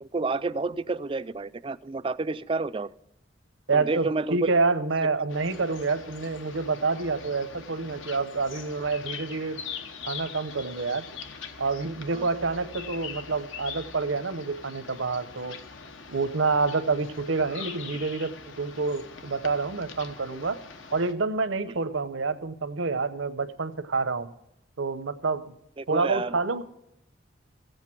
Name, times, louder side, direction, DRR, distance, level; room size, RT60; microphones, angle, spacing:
voice 1, 0.0-2.9 3.7-4.5 12.1-12.3 21.7-21.8 25.8-26.4, right 3 dB, 25° right, 14 dB, 0.3 m, -30 dB
voice 2, 3.7-9.6 10.1-11.2 11.6-15.6 16.1-20.6 20.9-24.3 24.8-25.4 25.9-26.6, right 4 dB, 80° right, 10 dB, 0.8 m, -28 dB
sound 1, 5.3-21.1, left 6 dB, 80° left, 1.1 m, -42 dB
16.0 x 8.1 x 5.9 m, 0.84 s
head